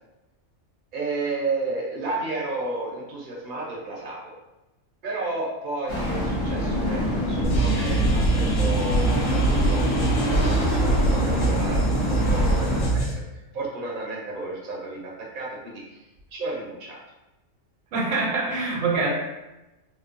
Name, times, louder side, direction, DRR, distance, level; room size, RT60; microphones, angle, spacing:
voice 1, 0.9-4.3 5.0-16.0 16.4-17.0, right 2 dB, 50° right, -3 dB, 0.7 m, -32 dB
sound 1, 5.9-12.9, left 1 dB, 50° left, 1.1 m, -26 dB
sound 2, 7.4-13.1, right 2 dB, 85° left, 1.1 m, -23 dB
voice 2, 17.9-19.1, right 3 dB, 85° right, -2 dB, 1.0 m, -24 dB
2.9 x 2.0 x 2.4 m, 1.0 s
omnidirectional pair, 1.3 m